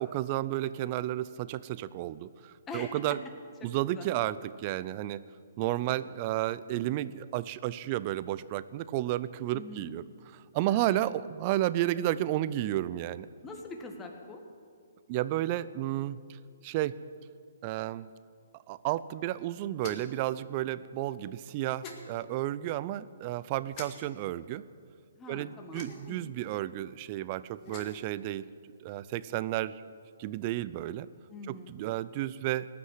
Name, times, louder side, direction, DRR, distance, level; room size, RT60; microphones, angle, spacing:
voice 1, 0.0-3.2 3.6-5.2 5.6-10.0 10.5-13.3 15.1-16.2 16.6-16.9 17.6-18.1 18.7-24.6 25.3-28.4 28.8-29.8 30.2-31.1 31.5-32.7, right 14 dB, 35° right, 16 dB, 0.5 m, -32 dB
voice 2, 9.5-9.9 10.6-11.0 13.4-14.4 25.2-26.3 31.3-31.8, left 2 dB, 15° left, 3 dB, 1.8 m, -44 dB
sound 1, 19.8-20.2 21.8-22.0 23.7-23.9 25.7-26.2 27.5-28.0, left 5 dB, 35° left, 2.0 m, -45 dB
18.0 x 6.1 x 9.6 m, 2.2 s
hypercardioid pair, 135°, 0 cm